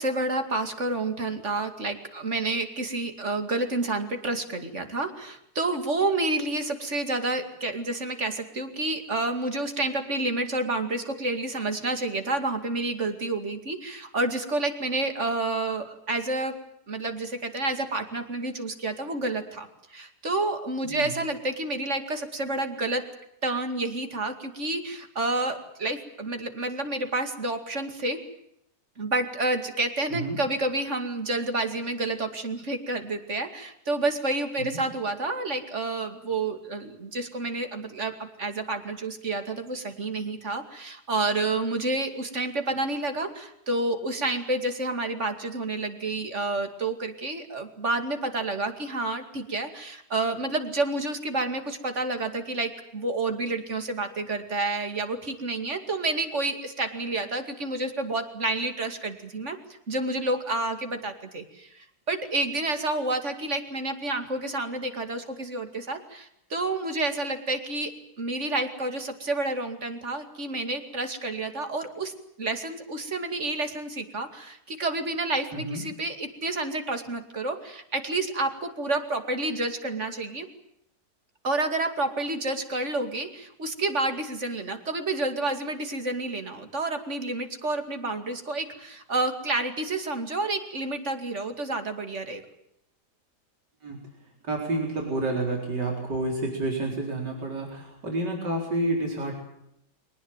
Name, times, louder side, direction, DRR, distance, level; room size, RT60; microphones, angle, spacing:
voice 1, 0.0-16.5 16.9-23.0 23.4-28.2 29.0-67.9 68.2-72.1 72.4-80.5 81.4-92.4, right 2 dB, 45° right, 7 dB, 2.7 m, -29 dB
voice 2, 94.4-99.4, right 2 dB, 80° right, 0 dB, 5.0 m, -29 dB
23.5 x 19.0 x 9.1 m, 0.76 s
omnidirectional pair, 1.8 m